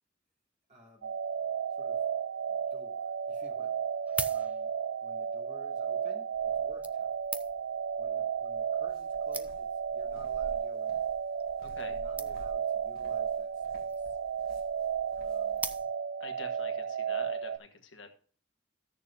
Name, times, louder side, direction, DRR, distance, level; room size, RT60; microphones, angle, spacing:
voice 1, 0.7-1.2 1.7-2.1 2.5-4.0 4.3-4.7 5.0-7.1 8.0-11.1 11.9-14.2 15.1-15.6, left 1 dB, 40° right, -3 dB, 2.9 m, -57 dB
sound 1, 1.0-17.6, right 7 dB, 90° right, 0.4 m, -33 dB
sound 2, 3.0-3.1 3.9-5.0 5.9-6.0 6.8-7.8 8.6-8.7 9.0-9.1 9.3-9.9 10.6-10.8 11.1-11.2 11.4-11.5 11.7-11.8 12.2-12.7 13.7-14.1 15.6-16.3 16.8-16.9, right 3 dB, 5° right, 0.4 m, -40 dB
sound 3, 6.3-15.8, left 1 dB, 50° left, 1.8 m, -54 dB
voice 2, 11.6-12.0 16.2-18.1, left 4 dB, 75° left, 5 dB, 1.3 m, -47 dB
14.5 x 6.7 x 2.5 m, 0.44 s
head